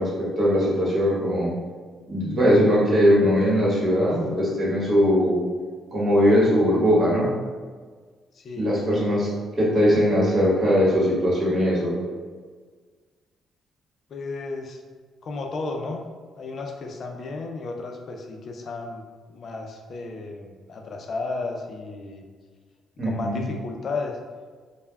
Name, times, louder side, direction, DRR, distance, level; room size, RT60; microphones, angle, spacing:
voice 1, 0.0-1.5 2.1-5.4 5.9-7.3 8.6-9.3 9.6-11.9 23.0-23.4, equal, 45° right, -6 dB, 1.1 m, -20 dB
voice 2, 8.3-8.7 14.1-14.8 15.2-16.1 16.4-19.0 19.3-22.2 23.0-24.2, left 3 dB, 55° left, 2 dB, 0.4 m, -33 dB
3.3 x 2.1 x 2.2 m, 1.5 s
cardioid pair, 90°, 0 cm